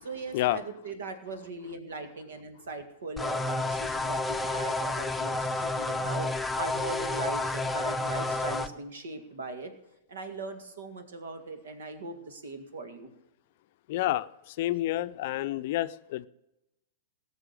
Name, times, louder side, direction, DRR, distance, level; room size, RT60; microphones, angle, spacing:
voice 1, 0.0-6.3 6.5-9.7 10.1-13.1, right 3 dB, 70° right, 2.0 m, -39 dB
sound 1, 3.2-8.7, left 2 dB, 5° left, 0.8 m, -30 dB
voice 2, 13.9-16.3, left 15 dB, 55° left, 0.5 m, -29 dB
18.5 x 6.8 x 6.7 m
figure-of-eight pair, 105°, 0 cm